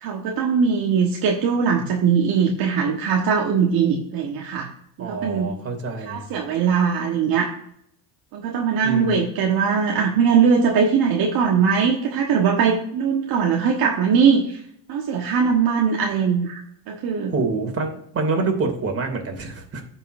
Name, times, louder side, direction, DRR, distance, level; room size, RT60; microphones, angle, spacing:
voice 1, 0.0-4.7 5.0-5.5 6.0-7.5 8.3-14.6 14.9-16.6 16.9-17.3, right 6 dB, 60° right, 0 dB, 1.5 m, -20 dB
voice 2, 5.0-6.3 8.8-9.2 17.3-19.8, right 3 dB, 35° right, 3 dB, 2.7 m, -26 dB
14.5 x 5.7 x 2.6 m, 0.69 s
cardioid pair, 115°, 40 cm